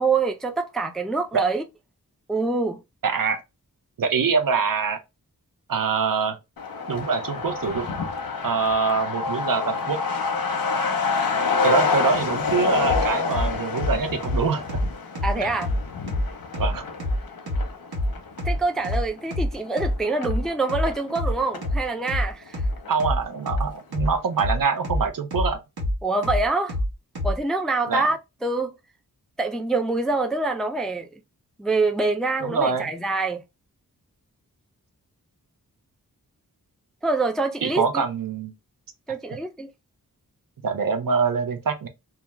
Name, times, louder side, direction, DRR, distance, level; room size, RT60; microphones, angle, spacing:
voice 1, 0.0-1.6 2.3-2.8 15.2-15.7 18.4-22.6 26.0-26.8 27.2-28.8 29.4-31.1 31.6-33.4 37.0-38.0 39.1-39.7, right 3 dB, ahead, 0.3 m, -25 dB
voice 2, 3.0-3.4 4.0-5.0 5.7-6.4 6.9-7.9 8.4-10.0 11.6-14.8 15.4-15.5 16.6-16.9 22.9-25.6 27.9-28.1 32.4-32.9 37.6-38.5 40.6-41.9, right 5 dB, 65° right, 0.6 m, -24 dB
Truck, 6.6-21.7 22.1-22.2 22.4-23.3 23.6-23.7 24.0-24.4, left 4 dB, 70° left, 0.7 m, -28 dB
sound 1, 12.8-27.4, left 1 dB, 85° right, 1.1 m, -26 dB
2.3 x 2.3 x 3.0 m
cardioid pair, 50°, 37 cm